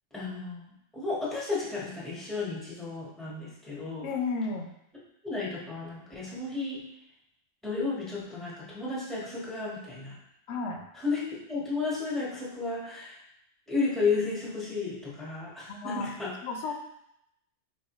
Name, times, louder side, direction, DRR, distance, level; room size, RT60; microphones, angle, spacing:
voice 1, 0.1-4.1 5.2-6.8 7.6-10.2 11.0-13.2 13.7-16.3, left 4 dB, ahead, -7 dB, 1.1 m, -33 dB
voice 2, 4.0-4.7 10.5-10.8 15.7-16.1 16.4-16.7, left 4 dB, 85° left, 3 dB, 0.9 m, -32 dB
4.7 x 3.0 x 3.0 m, 0.79 s
omnidirectional pair, 1.1 m